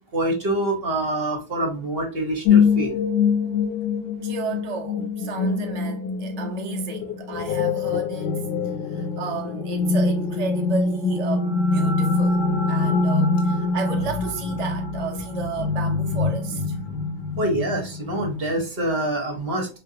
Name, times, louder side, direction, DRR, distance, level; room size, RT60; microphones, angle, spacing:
voice 1, 0.1-2.9 17.4-19.7, right 1 dB, 45° right, 0.9 m, -25 dB
sound 1, 2.5-18.6, left 4 dB, 80° left, 1.3 m, -24 dB
voice 2, 4.2-16.8, right 5 dB, 90° right, 0.3 m, -33 dB
4.1 x 2.5 x 2.7 m
omnidirectional pair, 1.8 m